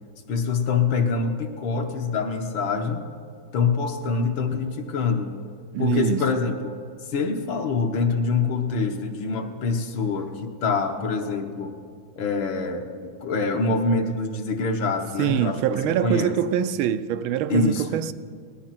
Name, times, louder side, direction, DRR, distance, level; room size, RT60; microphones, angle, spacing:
voice 1, 0.3-3.0 3.5-5.3 5.8-6.7 7.1-11.8 12.2-16.4 17.5-18.0, left 4 dB, 75° left, 1.9 m, -25 dB
voice 2, 5.7-6.3 15.2-18.1, right 10 dB, 90° right, 1.4 m, -24 dB
18.0 x 12.5 x 5.9 m
omnidirectional pair, 2.2 m